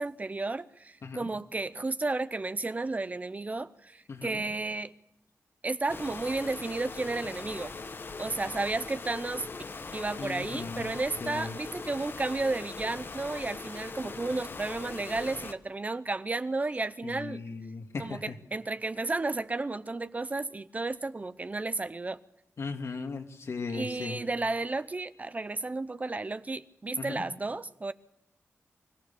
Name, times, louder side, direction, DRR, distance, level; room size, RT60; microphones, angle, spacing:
voice 1, 0.0-4.9 5.6-7.7 8.2-9.5 9.9-17.4 18.0-22.2 23.7-27.9, right 3 dB, 30° right, 0.7 m, -33 dB
voice 2, 4.1-4.4 10.2-10.9 11.2-11.5 17.0-18.2 22.6-24.2 27.0-27.2, left 4 dB, 70° left, 2.3 m, -37 dB
sound 1, 5.9-15.5, left 4 dB, 50° left, 1.1 m, -41 dB
25.0 x 15.5 x 7.0 m
wide cardioid pair, 100°, 5 cm